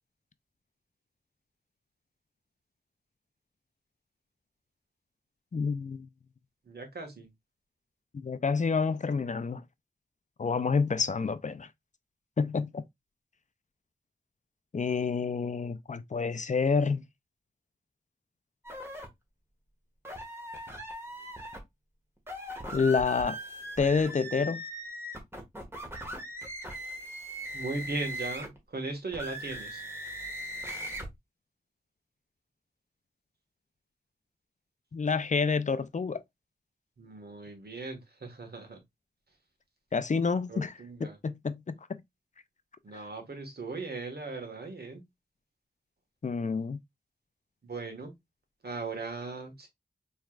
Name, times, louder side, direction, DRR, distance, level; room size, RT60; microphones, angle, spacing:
voice 1, 5.5-6.1 8.2-9.6 10.4-11.7 12.4-12.8 14.7-17.0 22.7-23.4 23.8-24.6 34.9-36.2 39.9-40.8 41.2-41.7 42.9-43.0 46.2-46.8, left 5 dB, 50° left, 0.5 m, -28 dB
voice 2, 6.6-7.3 27.5-29.8 37.0-38.8 40.5-41.2 42.8-45.0 47.6-48.1 48.6-49.7, right 3 dB, 80° right, 1.4 m, -38 dB
sound 1, 18.6-19.1 20.0-21.6 22.2-28.6 29.1-31.1, equal, 15° right, 1.5 m, -39 dB
4.6 x 3.2 x 2.3 m
wide cardioid pair, 75°, 16 cm